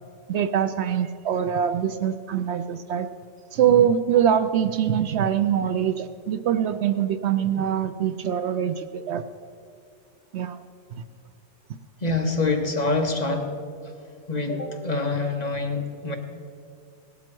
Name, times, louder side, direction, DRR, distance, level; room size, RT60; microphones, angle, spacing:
voice 1, 0.3-3.1 3.5-9.2 10.3-10.6, right 9 dB, 70° right, 10 dB, 0.8 m, -23 dB
voice 2, 12.0-13.6 13.8-13.9 14.3-16.2, left 3 dB, 35° left, 4 dB, 1.0 m, -26 dB
17.0 x 12.0 x 4.5 m, 2.3 s
omnidirectional pair, 1.3 m